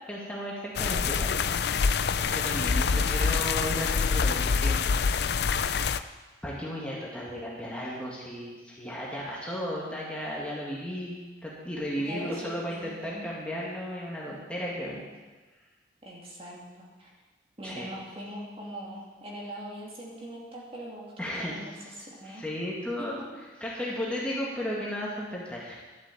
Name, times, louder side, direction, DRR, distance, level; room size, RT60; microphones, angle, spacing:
voice 1, 0.1-1.4 2.2-4.8 6.4-15.0 17.6-17.9 21.2-21.5 22.2-23.2 23.6-25.7, equal, 5° left, -5 dB, 2.1 m, -34 dB
sound 1, 0.8-6.0, left 5 dB, 60° left, 0.4 m, -26 dB
voice 2, 2.7-3.3 11.9-13.3 16.0-17.1 17.6-21.7 22.0-22.5 23.0-23.1 23.3-23.4, equal, 30° right, -4 dB, 2.7 m, -42 dB
12.0 x 7.6 x 8.4 m, 1.3 s
head